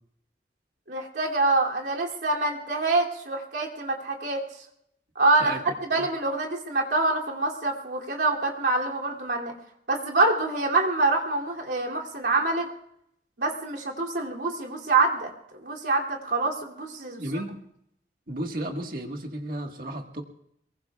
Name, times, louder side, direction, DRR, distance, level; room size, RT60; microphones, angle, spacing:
voice 1, 0.9-4.4 5.1-9.5 9.9-12.7 13.4-15.3 15.6-17.4, right 3 dB, 80° right, -2 dB, 2.8 m, -26 dB
voice 2, 17.2-17.6 18.3-20.2, right 1 dB, 55° right, 3 dB, 1.6 m, -33 dB
24.0 x 22.5 x 2.4 m, 0.73 s
head